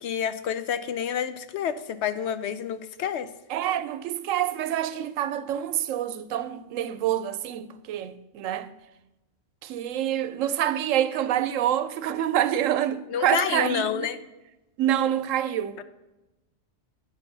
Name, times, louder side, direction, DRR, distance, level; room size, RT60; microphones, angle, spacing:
voice 1, 0.0-3.3 13.1-14.2 15.8-15.9, left 8 dB, 65° left, 0.8 m, -29 dB
voice 2, 3.5-8.7 9.6-14.1 14.8-15.8, right 11 dB, 90° right, 1.0 m, -27 dB
8.9 x 4.6 x 6.7 m
omnidirectional pair, 1.3 m